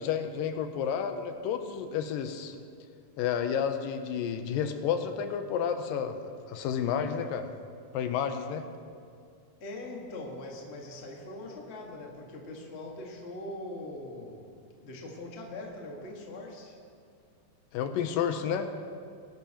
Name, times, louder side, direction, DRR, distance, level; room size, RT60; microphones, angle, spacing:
voice 1, 0.0-2.6 3.2-7.5 7.9-8.6 17.7-18.8, left 8 dB, 85° left, 7 dB, 2.4 m, -31 dB
voice 2, 9.6-14.5 14.8-16.8, left 2 dB, 40° left, -1 dB, 0.9 m, -42 dB
22.0 x 12.0 x 2.9 m, 2.3 s
omnidirectional pair, 4.0 m